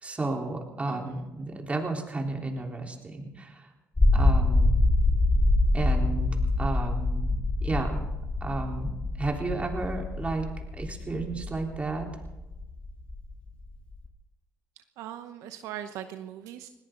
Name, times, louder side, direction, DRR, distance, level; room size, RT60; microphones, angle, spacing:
voice 1, 0.0-3.7 4.1-4.8 5.7-6.3 6.6-8.0 8.4-8.9 9.2-10.5 10.8-12.1, right 2 dB, 25° right, 1 dB, 3.7 m, -32 dB
voice 2, 0.9-1.2 15.0-16.7, right 11 dB, 80° right, 8 dB, 0.9 m, -40 dB
sound 1, 4.0-14.1, left 2 dB, 20° left, 2.0 m, -25 dB
20.5 x 17.5 x 3.9 m, 1.0 s
supercardioid pair, 75°, 5 cm